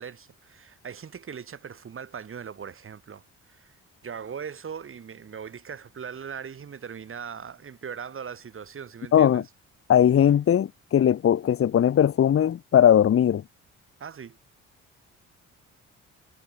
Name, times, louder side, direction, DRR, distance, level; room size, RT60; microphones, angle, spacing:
voice 1, 0.0-9.5 14.0-14.4, right 7 dB, 45° right, 2.6 m, -40 dB
voice 2, 9.1-9.4 9.9-13.4, left 9 dB, 45° left, 1.0 m, -19 dB
cardioid pair, 90°, 30 cm